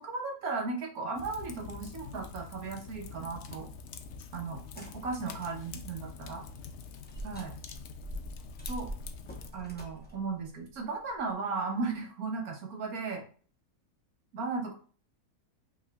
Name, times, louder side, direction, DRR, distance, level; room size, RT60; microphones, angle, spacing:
voice 1, 0.0-3.7 4.3-6.4 7.2-7.5 8.7-8.9 9.5-13.2 14.3-14.7, right 4 dB, 70° right, 2 dB, 1.5 m, -36 dB
Fire, 1.1-9.5, left 5 dB, 65° left, 0.7 m, -45 dB
sound 1, 4.6-5.6 6.0-6.1 7.0-11.3, right 1 dB, 10° left, 0.8 m, -44 dB
5.4 x 3.7 x 2.3 m, 0.42 s
omnidirectional pair, 1.6 m